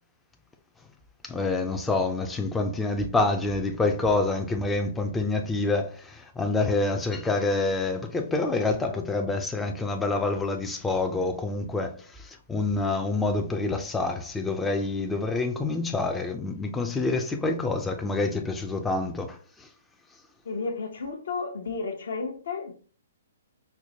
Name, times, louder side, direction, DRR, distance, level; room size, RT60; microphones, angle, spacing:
voice 1, 1.2-19.7, left 3 dB, 10° left, 0.3 m, -27 dB
voice 2, 20.4-22.7, left 4 dB, 70° left, 0.8 m, -32 dB
4.4 x 2.1 x 2.8 m
hypercardioid pair, 135°, 0 cm